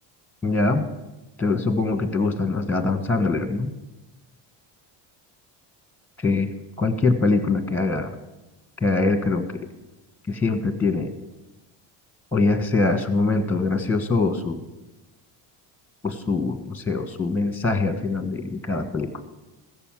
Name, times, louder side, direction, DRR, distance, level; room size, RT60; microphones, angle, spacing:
voice 1, 0.4-0.9 1.4-3.7 6.2-6.5 6.8-8.1 8.8-9.4 10.3-11.1 12.3-14.6 16.0-19.1, left 3 dB, 5° left, 9 dB, 1.3 m, -23 dB
15.5 x 6.8 x 7.5 m, 1.0 s
cardioid pair, 105°, 47 cm